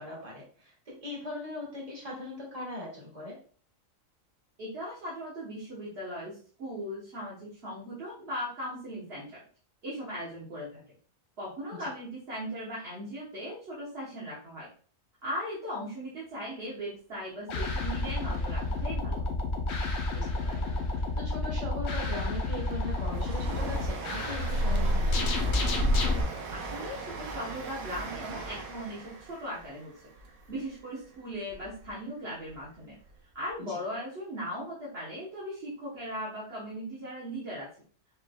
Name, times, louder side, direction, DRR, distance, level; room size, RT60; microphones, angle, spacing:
voice 1, 0.0-3.4 11.8-11.9 20.1-20.8 21.1-25.5 33.6-33.8, left 1 dB, 25° right, -5 dB, 2.0 m, -40 dB
voice 2, 4.6-9.4 9.8-10.8 11.4-14.7 15.2-19.3 26.5-29.9 30.5-33.0 33.3-37.7, equal, 50° right, -6 dB, 1.2 m, -38 dB
sound 1, 17.5-26.2, left 2 dB, 60° left, 0.9 m, -29 dB
Train, 22.4-31.9 32.3-33.2 33.5-33.6, right 4 dB, 85° right, 1.2 m, -40 dB
5.0 x 3.2 x 2.2 m, 0.43 s
omnidirectional pair, 1.4 m